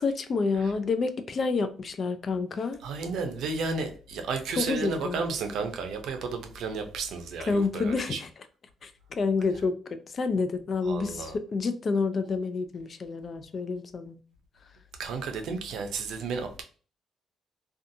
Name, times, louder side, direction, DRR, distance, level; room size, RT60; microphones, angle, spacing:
voice 1, 0.0-2.8 4.6-5.2 7.5-8.3 8.8-9.8 10.1-14.2, left 4 dB, 45° left, 0.3 m, -28 dB
voice 2, 2.8-8.2 10.8-11.4 15.0-16.6, right 4 dB, 80° right, 0.5 m, -33 dB
2.5 x 2.3 x 2.6 m
cardioid pair, 90°, 0 cm